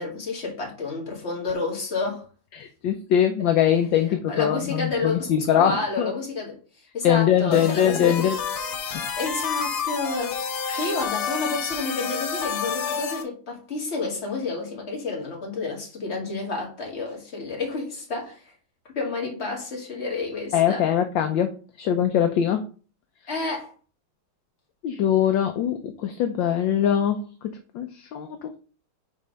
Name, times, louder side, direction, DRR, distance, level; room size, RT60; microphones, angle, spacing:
voice 1, 0.0-2.2 4.3-5.3 5.6-6.6 6.9-8.3 9.2-10.4 10.7-18.5 18.9-20.8 23.3-23.7, left 3 dB, 30° left, 2.3 m, -30 dB
voice 2, 2.5-6.1 7.0-8.4 8.9-9.0 10.7-10.8 20.5-22.6 24.8-27.3 27.7-28.6, left 9 dB, 70° left, 1.3 m, -22 dB
sound 1, 7.5-13.2, left 6 dB, 90° left, 1.9 m, -29 dB
5.5 x 4.6 x 5.1 m
omnidirectional pair, 2.3 m